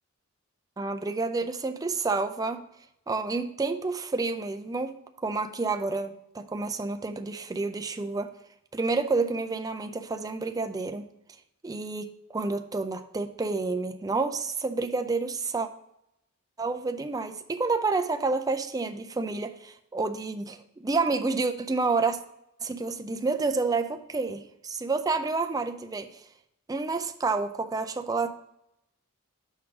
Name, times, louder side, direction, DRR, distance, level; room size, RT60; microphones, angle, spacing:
voice 1, 0.8-2.6 3.1-8.4 8.7-11.1 11.6-15.7 16.6-22.2 22.6-26.2 26.7-28.3, right 3 dB, 15° right, 7 dB, 0.4 m, -29 dB
6.3 x 3.8 x 5.7 m, 0.80 s
head